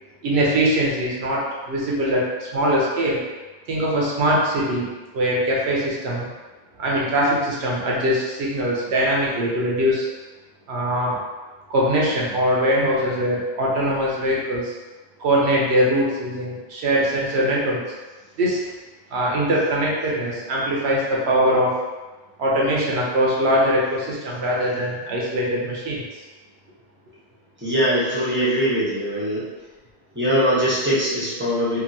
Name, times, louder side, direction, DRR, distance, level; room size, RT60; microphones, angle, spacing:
voice 1, 0.2-3.2 3.7-6.2 6.8-10.1 10.7-11.2 11.7-14.7 15.2-17.9 18.4-18.6 19.1-21.7 22.4-26.0, equal, 75° right, -4 dB, 1.0 m, -22 dB
voice 2, 27.6-29.5 30.1-31.8, equal, 10° right, -9 dB, 0.8 m, -21 dB
2.8 x 2.6 x 2.6 m, 1.2 s
omnidirectional pair, 1.1 m